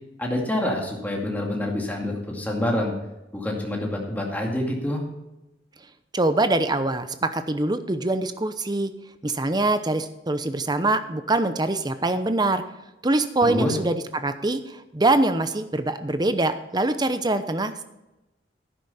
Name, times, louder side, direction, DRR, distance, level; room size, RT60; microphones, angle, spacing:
voice 1, 0.2-2.9 3.3-5.0 13.4-13.7, left 1 dB, 10° left, -1 dB, 2.3 m, -26 dB
voice 2, 6.1-8.9 9.2-12.6 13.0-17.8, right 2 dB, 20° right, 10 dB, 0.7 m, -24 dB
11.5 x 10.0 x 4.2 m, 0.98 s
head